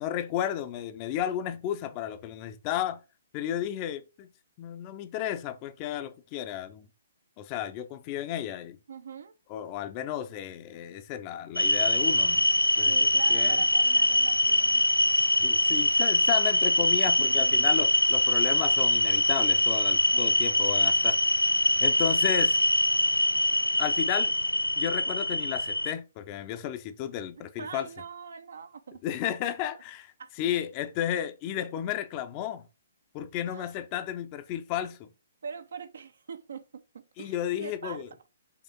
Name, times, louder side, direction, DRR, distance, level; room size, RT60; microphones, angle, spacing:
voice 1, 0.0-3.0 3.3-4.3 4.6-6.9 7.4-8.8 9.5-12.4 12.8-13.6 15.4-21.2 21.8-22.6 23.8-24.3 24.8-27.9 29.0-30.1 30.4-32.7 33.1-35.1 37.2-38.1, left 10 dB, 30° left, 0.7 m, -33 dB
voice 2, 8.9-9.3 12.8-14.9 17.0-17.7 20.1-20.8 27.6-29.0 30.2-30.7 33.5-33.7 35.4-38.1, right 6 dB, 60° right, 0.8 m, -43 dB
sound 1, 11.6-25.9, left 1 dB, 90° left, 0.3 m, -24 dB
6.0 x 3.4 x 5.4 m
figure-of-eight pair, 125°, 0 cm